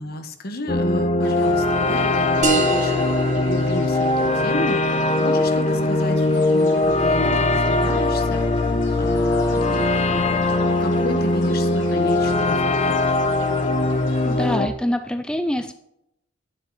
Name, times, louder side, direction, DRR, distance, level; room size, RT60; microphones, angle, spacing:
voice 1, 0.0-13.1, left 2 dB, 50° left, 7 dB, 1.3 m, -32 dB
sound 1, 0.7-14.7, left 2 dB, 35° left, 0.9 m, -20 dB
sound 2, 1.2-14.6, left 1 dB, 85° left, 5.0 m, -42 dB
sound 3, 2.4-7.5, right 3 dB, 40° right, 1.5 m, -29 dB
voice 2, 14.2-15.7, left 1 dB, 5° left, 8 dB, 0.4 m, -25 dB
11.5 x 9.2 x 4.1 m, 0.79 s
head